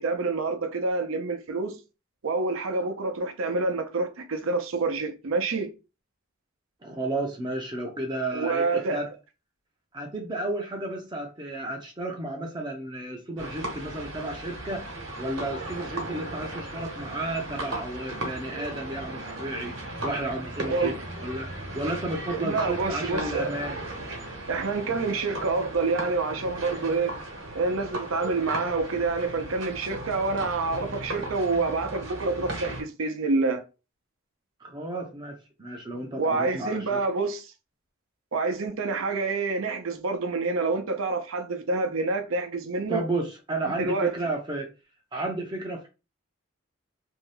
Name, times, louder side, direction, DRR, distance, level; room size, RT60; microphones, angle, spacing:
voice 1, 0.0-1.8 2.2-5.7 8.3-9.0 20.7-21.0 22.3-23.7 24.5-27.2 27.5-33.6 36.2-37.5 38.3-43.1 43.6-44.1, right 3 dB, 85° right, 0.6 m, -27 dB
voice 2, 6.8-9.1 9.9-23.8 34.6-37.0 42.9-44.7 45.1-45.9, right 2 dB, 20° right, 0.5 m, -32 dB
sound 1, 13.4-32.8, right 1 dB, 65° right, 1.0 m, -36 dB
2.7 x 2.2 x 3.2 m
head